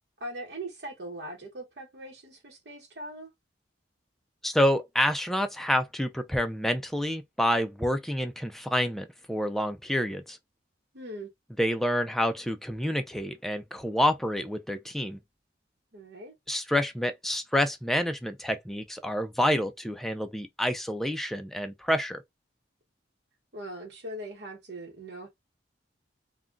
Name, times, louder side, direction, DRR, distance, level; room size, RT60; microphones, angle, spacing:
voice 1, 0.2-3.3 10.9-11.3 15.9-16.4 23.5-25.3, right 1 dB, 60° right, 0.9 m, -40 dB
voice 2, 4.4-10.4 11.6-15.2 16.5-22.2, equal, ahead, 0.3 m, -28 dB
2.4 x 2.1 x 3.7 m
head